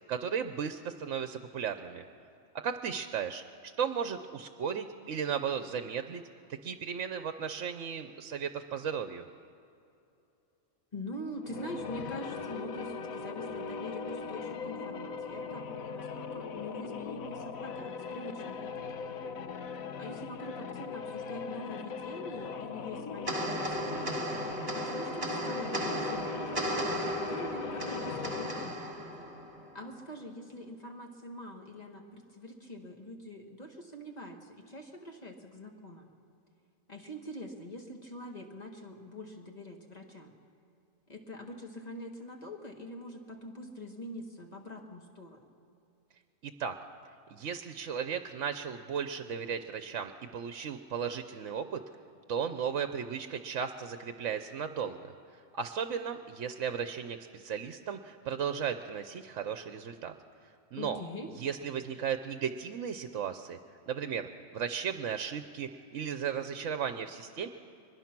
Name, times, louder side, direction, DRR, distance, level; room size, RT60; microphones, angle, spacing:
voice 1, 0.1-2.0 2.5-3.4 3.8-6.2 6.5-9.3 46.4-46.8 47.3-51.8 52.3-55.1 55.5-60.1 60.7-61.0 61.4-63.6 63.9-67.5, right 7 dB, 65° right, 8 dB, 1.1 m, -35 dB
voice 2, 10.9-19.1 20.0-24.1 24.7-26.9 27.3-28.9 29.7-36.1 36.9-40.3 41.1-45.5 60.7-61.3, left 1 dB, 30° left, 2 dB, 1.8 m, -44 dB
sound 1, 11.4-28.9, left 5 dB, 85° left, 1.3 m, -39 dB
sound 2, 23.3-29.9, right 1 dB, 25° right, 2.0 m, -35 dB
22.5 x 21.0 x 6.0 m, 2.7 s
omnidirectional pair, 1.4 m